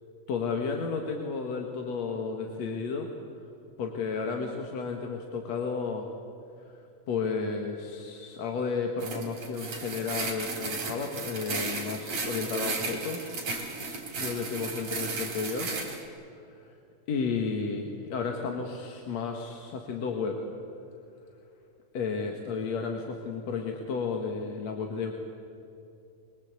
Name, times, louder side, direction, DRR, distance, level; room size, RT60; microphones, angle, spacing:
voice 1, 0.3-3.1 3.8-6.1 6.6-6.8 7.1-13.3 13.6-13.8 14.2-15.7 16.3-16.7 17.1-20.4 21.9-25.1, left 5 dB, 55° left, 2 dB, 2.5 m, -32 dB
sound 1, 9.0-16.0, right 3 dB, 45° right, 4.6 m, -35 dB
25.0 x 23.0 x 8.4 m, 2.7 s
omnidirectional pair, 4.2 m